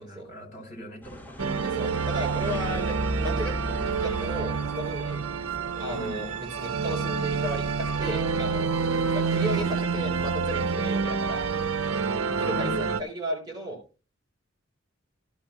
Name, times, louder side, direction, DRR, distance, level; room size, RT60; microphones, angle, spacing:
voice 1, 0.0-1.5 5.9-6.2 12.3-12.8, left 2 dB, 40° left, 3 dB, 4.3 m, -40 dB
sound 1, 1.0-11.9, right 1 dB, 10° left, 7.4 m, -40 dB
sound 2, 1.4-13.0, right 5 dB, 80° right, 0.6 m, -28 dB
voice 2, 1.6-5.2 5.8-8.7 9.0-11.5 12.1-13.8, right 1 dB, 20° right, -1 dB, 3.8 m, -35 dB
16.0 x 11.5 x 2.3 m, 0.32 s
head